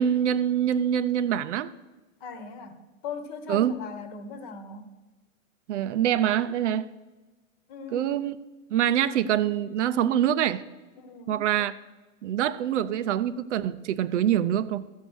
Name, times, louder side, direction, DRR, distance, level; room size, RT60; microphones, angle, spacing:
voice 1, 0.0-1.7 3.5-3.8 5.7-6.9 7.9-8.4 8.7-10.6 11.3-11.7 12.2-14.8, right 10 dB, 60° right, 14 dB, 0.6 m, -25 dB
voice 2, 2.2-4.9 7.7-8.1 11.0-11.5, left 5 dB, 40° left, 10 dB, 1.2 m, -39 dB
14.0 x 5.4 x 6.3 m, 1.2 s
hypercardioid pair, 145°, 40 cm